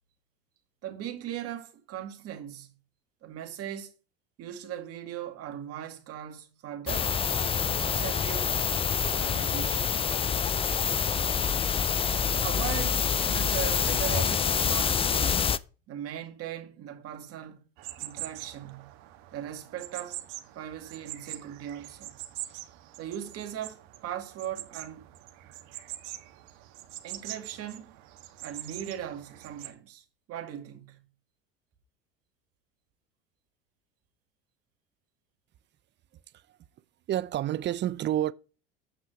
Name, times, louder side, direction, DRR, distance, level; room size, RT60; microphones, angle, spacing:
voice 1, 0.8-2.7 3.2-3.9 4.4-7.2 7.7-8.7 9.2-10.0 12.3-15.5 15.9-17.7 18.0-18.9 19.3-20.2 20.5-22.1 23.0-25.1 27.0-28.0 28.4-31.0, right 10 dB, 50° right, 2.3 m, -39 dB
sound 1, 6.9-15.6, left 7 dB, 20° left, 0.4 m, -27 dB
sound 2, 17.8-29.7, right 15 dB, 70° right, 1.4 m, -44 dB
voice 2, 37.1-38.3, right 12 dB, 35° right, 0.6 m, -28 dB
8.2 x 6.0 x 4.8 m
supercardioid pair, 95°, 30 cm